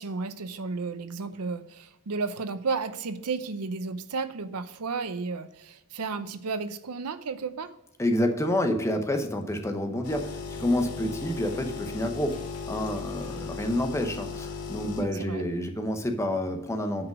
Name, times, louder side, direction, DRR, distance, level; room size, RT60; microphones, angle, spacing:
voice 1, 0.0-7.7 15.0-15.4, right 4 dB, 85° right, 12 dB, 0.7 m, -33 dB
voice 2, 8.0-12.4 12.7-17.1, left 1 dB, 15° left, 5 dB, 0.9 m, -28 dB
sound 1, 10.0-15.0, left 4 dB, 85° left, 1.8 m, -36 dB
9.3 x 5.0 x 6.1 m, 0.86 s
head